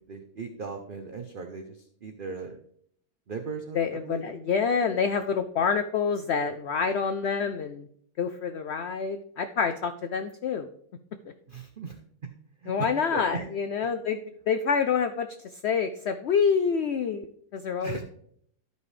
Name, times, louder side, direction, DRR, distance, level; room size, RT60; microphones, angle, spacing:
voice 1, 0.0-1.7 2.0-2.6 3.3-4.2 11.5-12.0 12.6-13.5 17.8-18.0, right 4 dB, 50° right, 5 dB, 0.6 m, -37 dB
voice 2, 3.7-7.9 8.2-10.7 12.7-14.2 14.5-15.3 15.6-17.3 17.5-18.0, left 6 dB, 85° left, 9 dB, 0.5 m, -27 dB
12.5 x 5.3 x 3.2 m, 0.65 s
omnidirectional pair, 1.7 m